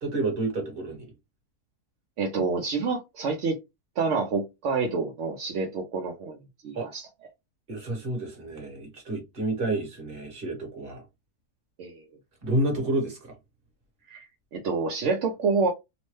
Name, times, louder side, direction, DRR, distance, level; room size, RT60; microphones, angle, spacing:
voice 1, 0.0-1.1 6.7-6.9 7.7-11.0 12.4-13.3, right 2 dB, 40° right, 1.2 m, -29 dB
voice 2, 2.2-3.6 4.0-6.4 6.6-7.1 11.8-12.0 14.1-14.2 14.5-15.7, right 4 dB, 65° right, 0.7 m, -27 dB
3.0 x 2.1 x 3.1 m
omnidirectional pair, 1.7 m